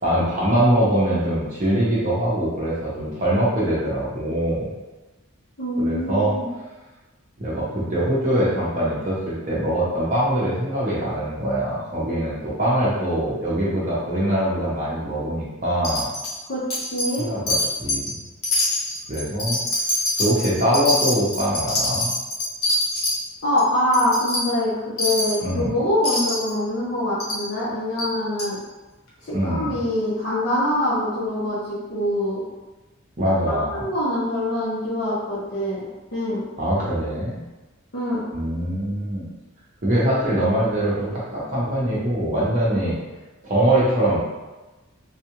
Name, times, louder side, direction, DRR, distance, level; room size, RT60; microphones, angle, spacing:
voice 1, 0.0-4.7 5.8-6.3 7.4-16.1 17.2-18.0 19.1-19.6 20.2-22.1 25.4-25.7 29.3-29.7 33.2-33.8 36.6-37.4 38.3-39.3 39.8-43.0 43.4-44.2, right 1 dB, 40° right, -7 dB, 0.7 m, -23 dB
voice 2, 5.6-6.5 16.5-17.3 23.4-28.6 29.2-32.4 33.7-35.8 36.1-36.4 37.9-38.2, left 1 dB, 55° left, -10 dB, 0.8 m, -24 dB
Wind chime, 15.8-16.4 16.7-17.2 17.5-18.1 18.4-23.2 23.6-23.7 23.9-24.4 25.0-25.4 26.0-26.5 27.2-27.4 28.0-28.1 28.4-28.5, left 1 dB, 90° left, 1.0 m, -24 dB
3.5 x 2.3 x 3.0 m, 1.1 s
head